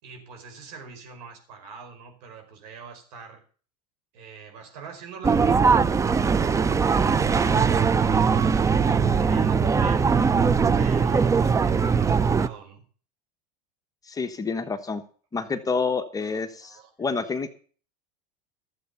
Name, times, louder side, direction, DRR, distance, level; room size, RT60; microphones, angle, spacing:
voice 1, 0.0-3.4 4.1-10.1 10.7-12.8 16.2-16.9, right 5 dB, 75° right, 5 dB, 4.9 m, -44 dB
sound 1, 5.2-12.5, right 5 dB, 15° right, 0.5 m, -21 dB
voice 2, 14.1-15.0 15.3-17.5, left 4 dB, 15° left, 8 dB, 1.2 m, -28 dB
13.0 x 7.8 x 6.9 m, 0.42 s
supercardioid pair, 125°, 20 cm